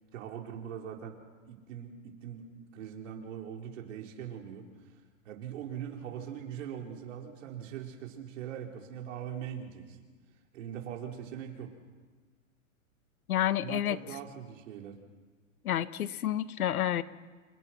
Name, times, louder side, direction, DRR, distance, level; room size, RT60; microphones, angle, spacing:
voice 1, 0.1-1.1 1.5-4.7 5.2-10.0 10.5-11.7 13.6-15.0, right 9 dB, 60° right, 1 dB, 4.9 m, -41 dB
voice 2, 13.3-14.0 15.6-17.0, left 11 dB, 85° left, 13 dB, 1.4 m, -29 dB
28.0 x 27.0 x 6.0 m, 1.4 s
supercardioid pair, 155°, 42 cm